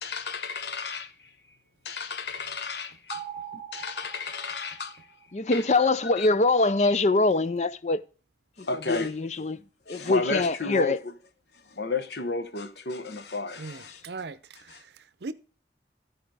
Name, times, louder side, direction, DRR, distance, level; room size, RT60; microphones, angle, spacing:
voice 1, 0.0-1.3 1.8-3.3 3.5-5.1 5.5-5.7 6.2-6.3 8.6-9.1 9.9-11.1 11.5-14.0 14.7-14.8, left 3 dB, 70° left, 1.0 m, -33 dB
sound 1, 3.1-5.6, right 8 dB, 20° right, 1.2 m, -42 dB
voice 2, 5.3-8.0 8.9-9.6 9.9-11.0, left 3 dB, 40° left, 0.5 m, -23 dB
voice 3, 13.6-14.9 15.2-15.3, right 3 dB, 70° right, 0.6 m, -39 dB
13.0 x 4.9 x 4.8 m
head